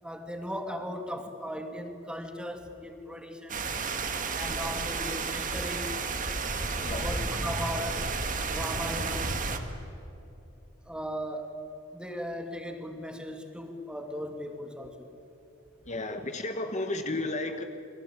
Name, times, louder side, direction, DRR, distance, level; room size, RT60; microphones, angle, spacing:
voice 1, 0.0-3.7 4.3-5.9 6.9-8.1 8.5-9.3 10.9-11.5 11.9-15.1, equal, 5° right, 5 dB, 2.4 m, -37 dB
sound 1, 3.5-9.6, right 4 dB, 40° right, 2.0 m, -32 dB
voice 2, 6.8-7.2 15.9-17.6, left 2 dB, 35° left, 7 dB, 1.3 m, -33 dB
29.0 x 22.5 x 8.9 m, 2.9 s
head